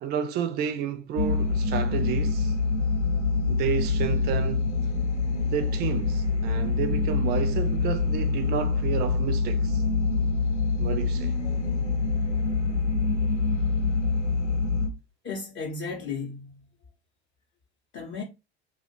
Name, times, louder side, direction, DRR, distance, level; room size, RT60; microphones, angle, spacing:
voice 1, 0.0-2.6 3.5-4.7 5.4-9.8 10.8-11.3, right 8 dB, 30° right, 0.4 m, -31 dB
sound 1, 1.2-14.9, left 4 dB, 85° left, 0.9 m, -25 dB
voice 2, 15.2-16.6 17.9-18.2, left 4 dB, 35° left, 0.7 m, -34 dB
2.2 x 2.1 x 2.9 m
figure-of-eight pair, 70°, 35 cm